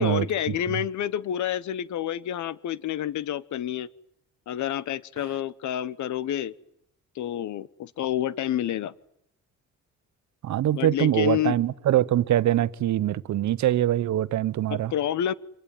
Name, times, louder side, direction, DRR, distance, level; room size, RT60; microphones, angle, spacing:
voice 1, 0.0-3.9 4.5-6.5 7.1-8.9 10.7-11.6 14.7-15.3, left 11 dB, 70° left, 1.2 m, -28 dB
voice 2, 10.4-14.9, right 12 dB, 70° right, 1.1 m, -23 dB
26.0 x 22.5 x 9.3 m
cardioid pair, 90°, 30 cm